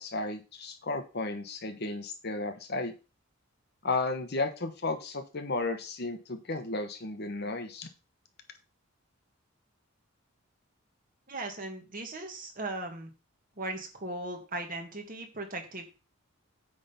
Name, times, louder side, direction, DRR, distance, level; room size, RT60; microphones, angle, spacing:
voice 1, 0.0-2.9 3.8-7.9, left 3 dB, 50° left, 7 dB, 1.1 m, -33 dB
voice 2, 11.3-13.1 13.6-15.9, right 2 dB, 40° right, 3 dB, 1.9 m, -38 dB
8.9 x 3.8 x 5.7 m, 0.31 s
head